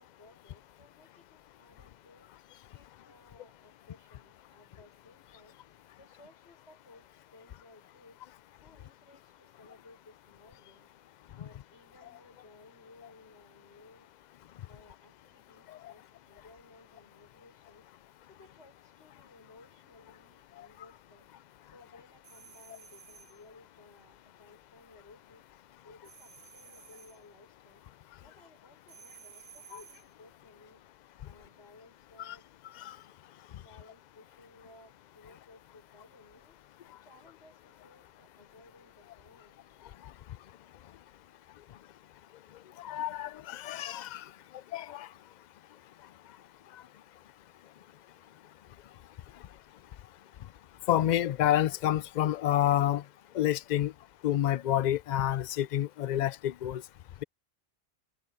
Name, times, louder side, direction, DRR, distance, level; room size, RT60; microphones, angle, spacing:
voice 1, 0.0-2.3 2.7-5.6 6.0-8.2 8.6-10.9 11.3-14.1 14.7-17.9 18.3-21.3 21.7-25.5 25.8-27.8 28.2-30.8 31.2-32.5 33.5-36.6 37.0-39.6, left 2 dB, 90° left, 6.9 m, -58 dB
sound 1, 22.2-23.4 26.0-27.2 28.9-30.1, right 7 dB, 80° right, 1.6 m, -54 dB
voice 2, 42.8-44.3 44.7-45.1 50.9-53.0 53.3-53.9 54.2-56.8, left 12 dB, 55° left, 0.5 m, -28 dB
omnidirectional pair, 1.1 m